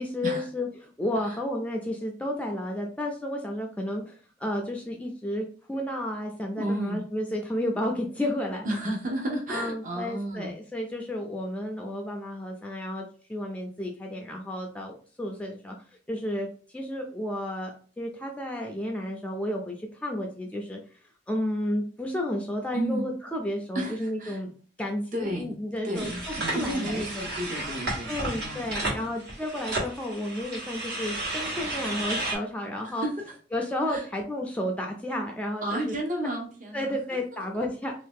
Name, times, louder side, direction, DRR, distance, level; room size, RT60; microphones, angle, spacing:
voice 1, 0.0-8.7 9.5-13.0 13.3-15.7 16.1-16.5 16.7-20.8 21.3-24.5 24.8-27.2 28.1-33.1 33.5-36.0 36.7-37.9, left 1 dB, 5° left, 1 dB, 0.4 m, -32 dB
voice 2, 6.6-7.0 8.6-10.5 22.7-23.1 23.7-24.4 25.1-25.5 25.8-29.1 32.8-33.2 33.9-34.0 35.6-37.0 37.3-37.6, right 1 dB, 45° right, 0 dB, 0.8 m, -32 dB
sound 1, 25.9-32.4, right 2 dB, 65° right, 1.4 m, -33 dB
3.0 x 2.7 x 3.5 m, 0.42 s
head